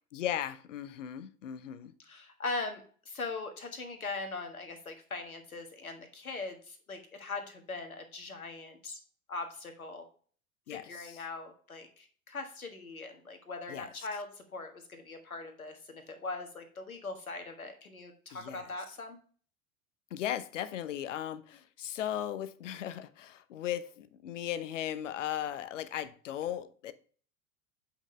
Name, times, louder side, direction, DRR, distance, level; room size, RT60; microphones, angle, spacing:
voice 1, 0.1-1.9 10.7-11.2 13.7-14.1 18.3-18.7 20.1-26.9, left 11 dB, 60° left, 0.8 m, -37 dB
voice 2, 2.1-9.0 9.3-10.1 10.7-19.2, left 3 dB, 80° left, 1.6 m, -41 dB
8.0 x 5.7 x 3.2 m
figure-of-eight pair, 85°, 42 cm